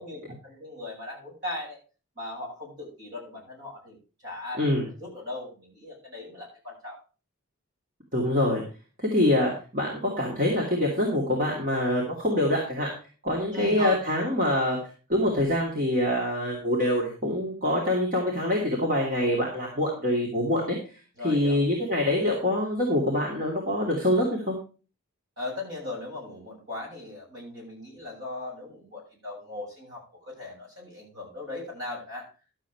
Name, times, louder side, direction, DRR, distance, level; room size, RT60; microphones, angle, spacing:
voice 1, 0.0-1.8 2.2-4.0 4.2-4.6 5.0-7.0 13.5-14.0 21.2-21.6 25.4-32.3, left 2 dB, 55° right, -2 dB, 7.0 m, -37 dB
voice 2, 4.6-4.9 8.1-8.6 9.0-12.9 13.2-14.8 15.1-20.8 21.2-24.6, left 1 dB, 40° right, -2 dB, 2.6 m, -25 dB
12.0 x 7.6 x 4.7 m, 0.35 s
head